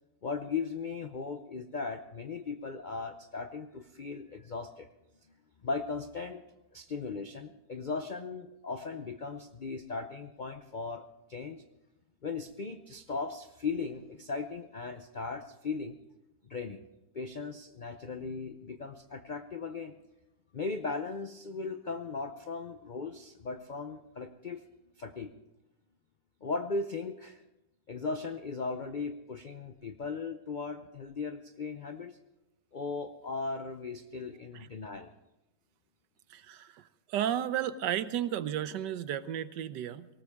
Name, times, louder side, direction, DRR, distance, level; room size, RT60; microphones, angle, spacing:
voice 1, 0.2-4.9 5.6-6.4 6.7-11.6 12.2-16.0 16.4-16.8 17.1-20.0 20.5-24.6 25.0-25.3 26.4-27.4 27.9-32.2 32.7-35.1, left 4 dB, 70° left, 8 dB, 0.4 m, -37 dB
voice 2, 36.3-36.8 37.1-40.1, right 10 dB, 80° right, 14 dB, 1.4 m, -33 dB
18.5 x 18.5 x 3.6 m, 0.97 s
omnidirectional pair, 1.9 m